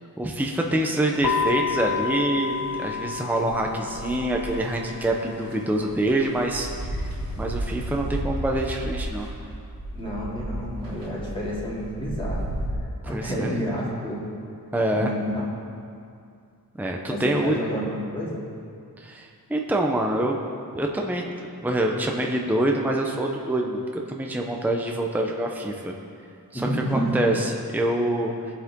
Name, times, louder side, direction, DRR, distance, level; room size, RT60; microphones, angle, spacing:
voice 1, 0.2-7.1 7.4-9.3 13.0-13.5 14.7-15.1 16.8-17.6 19.0-20.4 20.7-21.2 21.6-25.9 26.5-28.5, right 1 dB, 5° right, 1 dB, 0.7 m, -26 dB
sound 1, 1.2-8.2, left 6 dB, 70° left, 0.9 m, -32 dB
sound 2, 3.5-4.7 5.4-5.5 5.9-12.7, right 1 dB, 75° right, 3.4 m, -33 dB
voice 2, 9.9-12.5 13.1-14.2 14.9-15.4 17.1-18.4 26.5-27.2, equal, 15° left, -7 dB, 2.6 m, -29 dB
19.5 x 7.7 x 3.7 m, 2.4 s
wide cardioid pair, 160°, 36 cm